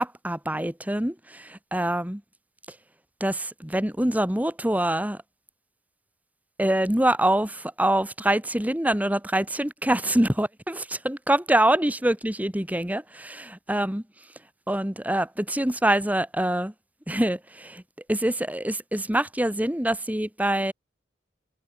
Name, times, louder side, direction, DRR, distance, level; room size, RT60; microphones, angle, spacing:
voice 1, 0.0-2.2 3.2-5.2 6.6-14.0 14.7-16.7 17.1-17.8 18.1-20.7, right 1 dB, 10° right, 1.3 m, -25 dB
head